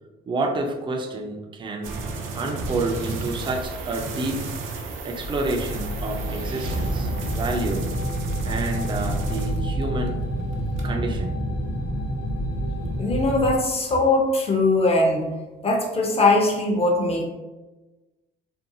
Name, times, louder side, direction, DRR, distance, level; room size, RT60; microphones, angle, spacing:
voice 1, 0.3-2.0 2.3-4.5 5.0-7.9 8.4-10.2 10.8-11.4, right 2 dB, 25° right, 2 dB, 0.4 m, -29 dB
sound 1, 1.8-10.1 10.4-10.9, right 3 dB, 90° right, 0.4 m, -32 dB
sound 2, 5.2-13.6, equal, 85° left, 0.6 m, -28 dB
voice 2, 13.0-15.3 15.6-17.3, left 2 dB, 30° left, 1 dB, 0.6 m, -21 dB
2.6 x 2.2 x 2.6 m, 1.1 s
cardioid pair, 90°, 20 cm